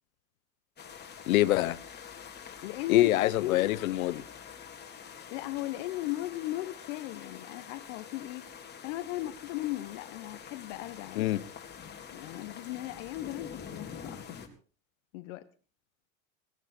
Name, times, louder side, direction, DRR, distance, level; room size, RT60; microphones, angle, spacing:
sound 1, 0.8-14.5, left 7 dB, 25° left, 3.7 m, -46 dB
voice 1, 1.3-1.8 2.9-4.2 11.2-11.4, left 15 dB, 90° left, 1.2 m, -25 dB
voice 2, 2.6-3.6 5.3-8.5 8.8-11.3 12.1-14.4 15.1-15.5, left 16 dB, 70° left, 1.3 m, -37 dB
19.0 x 15.5 x 4.4 m
supercardioid pair, 125°, 41 cm